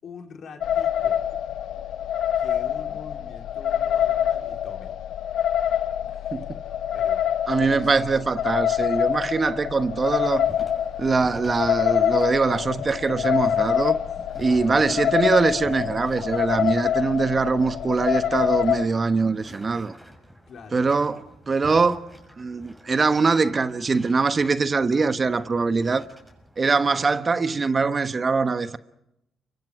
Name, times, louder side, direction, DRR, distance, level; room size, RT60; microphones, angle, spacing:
voice 1, 0.0-1.2 2.3-4.9 6.1-7.2 7.6-8.0 14.5-14.8 20.5-20.8, left 5 dB, 60° left, 4.0 m, -44 dB
sound 1, 0.6-18.8, left 9 dB, 80° left, 0.9 m, -25 dB
voice 2, 6.3-6.6 7.5-10.5 11.0-14.0 14.4-19.9 20.7-22.0 22.4-26.0 26.6-28.8, right 4 dB, 35° right, 1.1 m, -23 dB
sound 2, 10.4-26.9, equal, 5° right, 6.7 m, -48 dB
29.5 x 24.5 x 5.0 m
cardioid pair, 90°, 0 cm